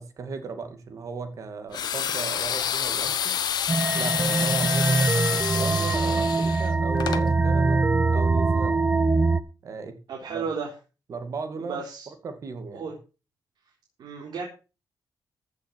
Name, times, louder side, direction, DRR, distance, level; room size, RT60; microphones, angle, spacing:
voice 1, 0.0-3.4 3.9-7.8 8.1-8.8 9.6-10.0 10.3-10.4 11.1-12.9, right 4 dB, 45° right, 8 dB, 2.3 m, -36 dB
sound 1, 1.7-7.2, left 9 dB, 70° left, 1.2 m, -28 dB
sound 2, 3.7-9.4, right 3 dB, 15° right, 0.7 m, -23 dB
voice 2, 10.1-10.7 11.7-12.1 12.7-12.9 14.0-14.4, right 5 dB, 80° right, -1 dB, 3.7 m, -33 dB
15.0 x 6.6 x 6.3 m, 0.33 s
wide cardioid pair, 175°, 7 cm